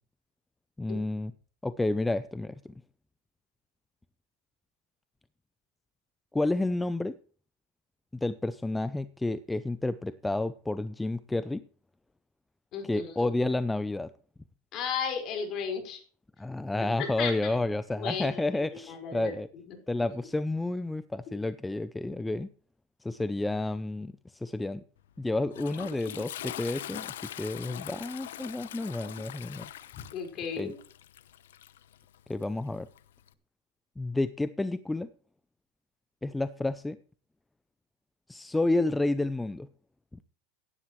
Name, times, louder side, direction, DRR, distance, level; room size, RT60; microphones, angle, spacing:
voice 1, 0.8-1.3 1.6-2.5 6.3-7.1 8.2-11.6 12.8-14.1 16.4-19.5 19.9-22.5 23.0-24.8 25.2-29.7 30.6-30.7 32.3-32.9 34.0-35.1 36.2-37.0 38.3-39.7 40.1-40.2, left 2 dB, 5° left, 14 dB, 0.5 m, -30 dB
voice 2, 12.7-13.3 14.7-16.0 17.0-17.4 18.0-19.4 19.7-19.8 30.1-30.7, left 6 dB, 45° left, 4 dB, 5.0 m, -34 dB
Toilet flush, 25.0-33.3, left 12 dB, 90° left, 0.9 m, -43 dB
16.5 x 11.0 x 3.2 m, 0.41 s
supercardioid pair, 125°, 0 cm